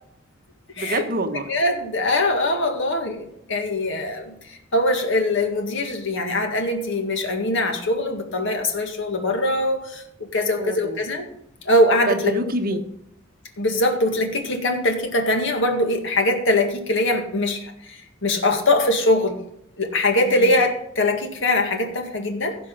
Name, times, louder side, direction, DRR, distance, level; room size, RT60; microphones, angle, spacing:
voice 1, 0.8-1.5 10.6-11.0 12.1-12.8 20.2-20.6, right 1 dB, 45° right, 6 dB, 1.2 m, -26 dB
voice 2, 1.5-10.0 10.3-11.3 11.7-12.2 13.6-19.4 19.8-22.6, left 1 dB, 65° left, 4 dB, 1.9 m, -22 dB
16.0 x 5.3 x 5.4 m, 0.77 s
head